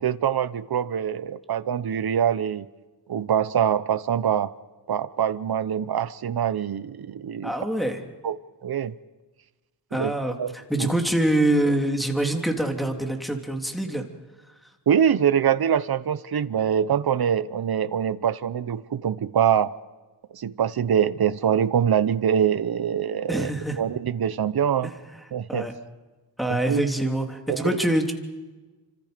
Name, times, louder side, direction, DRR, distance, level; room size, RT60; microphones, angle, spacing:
voice 1, 0.0-2.7 3.1-4.5 4.9-7.5 8.2-8.9 9.9-10.1 10.4-10.9 14.9-19.7 20.3-23.5 23.8-24.9 25.3-25.7 26.5-26.8 27.5-27.8, right 8 dB, 55° right, 14 dB, 1.0 m, -24 dB
voice 2, 7.4-8.0 9.9-14.0 23.3-23.8 24.8-24.9 25.5-25.7 26.4-28.1, right 1 dB, ahead, 3 dB, 3.0 m, -25 dB
30.0 x 26.0 x 5.2 m, 1.2 s
wide cardioid pair, 105°, 43 cm